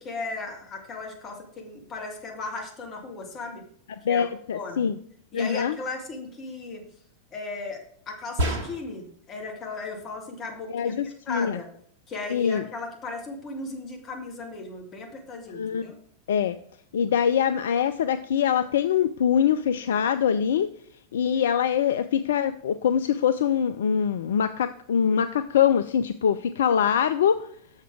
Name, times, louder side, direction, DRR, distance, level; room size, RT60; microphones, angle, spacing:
voice 1, 0.0-3.6 4.1-4.8 5.3-6.8 7.3-11.7 12.1-16.0, left 3 dB, 30° left, 1 dB, 2.0 m, -36 dB
voice 2, 4.0-4.9 5.3-5.8 10.7-11.6 12.3-12.6 15.5-15.9 16.3-16.6 16.9-20.7 21.1-27.4, left 8 dB, 60° left, 11 dB, 0.3 m, -23 dB
sound 1, 8.4-9.1, equal, 50° right, 1.4 m, -28 dB
6.7 x 6.5 x 4.7 m, 0.64 s
figure-of-eight pair, 90°, 0 cm